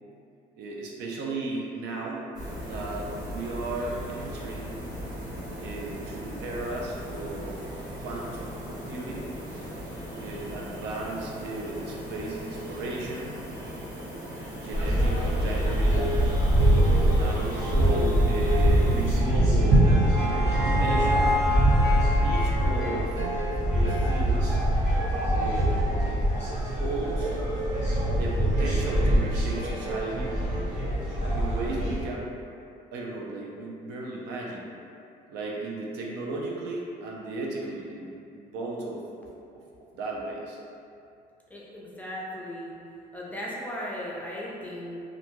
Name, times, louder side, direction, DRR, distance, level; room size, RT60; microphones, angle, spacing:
voice 1, 0.6-2.3 2.6-4.7 5.6-7.7 8.0-9.3 10.2-13.4 14.4-16.1 17.2-21.3 22.1-23.2 23.7-24.6 25.3-27.3 28.1-30.4 31.3-32.3 32.9-34.7 35.3-39.0 39.9-40.6, right 2 dB, 85° right, -2 dB, 0.5 m, -35 dB
sound 1, 2.3-19.2, equal, 20° right, 0.8 m, -38 dB
sound 2, 14.7-32.0, right 1 dB, 40° right, 1.1 m, -24 dB
sound 3, 19.5-24.6, left 2 dB, 70° right, 1.3 m, -31 dB
voice 2, 41.5-42.7 43.1-45.0, equal, 10° left, -5 dB, 0.5 m, -36 dB
2.6 x 2.1 x 2.9 m, 2.5 s
cardioid pair, 110°, 17 cm